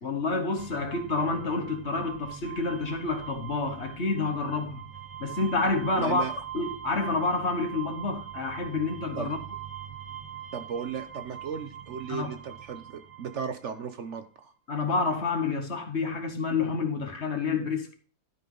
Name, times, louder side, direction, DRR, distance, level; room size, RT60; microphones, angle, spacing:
voice 1, 0.0-4.8 5.2-6.2 6.5-9.4 12.1-12.3 14.7-17.9, left 3 dB, 50° left, 1.3 m, -28 dB
sound 1, 0.6-14.0, right 10 dB, 35° right, 0.5 m, -42 dB
voice 2, 6.0-6.3 9.2-9.3 10.5-14.5, right 6 dB, 60° right, 0.9 m, -35 dB
12.0 x 5.3 x 3.8 m
omnidirectional pair, 1.6 m